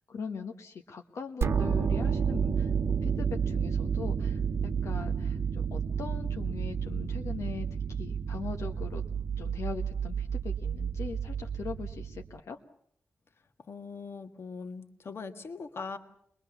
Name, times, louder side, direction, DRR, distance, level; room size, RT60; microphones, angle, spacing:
voice 1, 0.1-2.7 3.0-9.0 9.4-12.6, left 5 dB, 75° left, 4 dB, 1.3 m, -41 dB
sound 1, 1.4-12.4, right 7 dB, 55° right, 0.9 m, -31 dB
voice 2, 13.6-16.0, left 4 dB, 55° left, 7 dB, 1.6 m, -41 dB
23.0 x 21.5 x 7.1 m, 0.67 s
wide cardioid pair, 155°, 5 cm